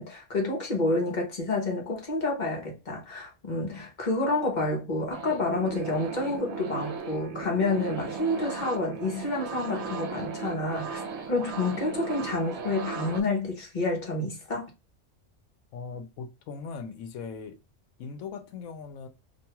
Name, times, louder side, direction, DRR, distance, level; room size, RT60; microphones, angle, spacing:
voice 1, 0.0-11.0 11.3-14.7, left 2 dB, 45° left, 0.8 m, -29 dB
sound 1, 5.1-13.2, right 5 dB, 70° right, 0.8 m, -36 dB
voice 2, 15.7-17.6 18.0-19.1, left 5 dB, 85° left, 1.0 m, -39 dB
2.5 x 2.2 x 2.9 m
omnidirectional pair, 1.3 m